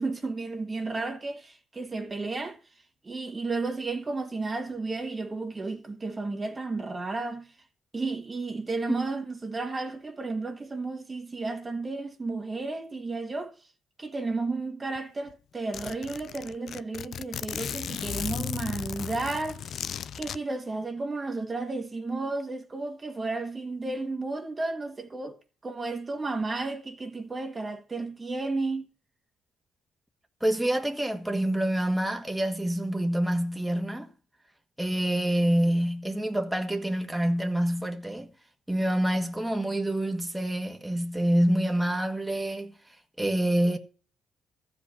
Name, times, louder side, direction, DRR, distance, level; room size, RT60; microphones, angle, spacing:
voice 1, 0.0-2.6 3.0-7.5 7.9-13.5 14.0-25.4 25.6-28.9, right 3 dB, 25° right, 1.6 m, -33 dB
Zipper (clothing), 14.9-15.0 15.3-15.4 15.7-20.4, left 9 dB, 65° left, 0.5 m, -35 dB
voice 2, 30.4-34.1 34.8-38.3 38.7-42.7 43.2-43.8, right 1 dB, 5° right, 1.7 m, -27 dB
14.5 x 5.2 x 8.1 m
cardioid pair, 90°, 0 cm